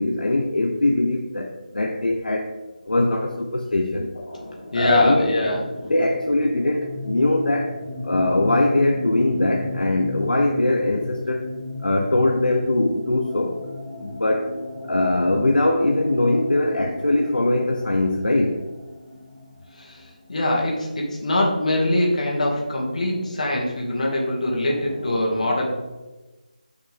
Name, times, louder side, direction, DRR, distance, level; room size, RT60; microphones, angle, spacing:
voice 1, 0.0-2.6 2.9-4.1 4.7-5.4 5.8-7.8 8.0-11.5 11.8-13.6 14.0-14.6 14.8-18.6, left 2 dB, 80° left, 2 dB, 0.9 m, -21 dB
voice 2, 4.3-5.9 19.8-20.0 20.3-25.7, left 1 dB, 55° left, -2 dB, 2.5 m, -23 dB
sound 1, 5.0-20.6, left 2 dB, 5° right, 2.5 m, -35 dB
8.2 x 6.0 x 3.7 m, 1.1 s
figure-of-eight pair, 165°, 5 cm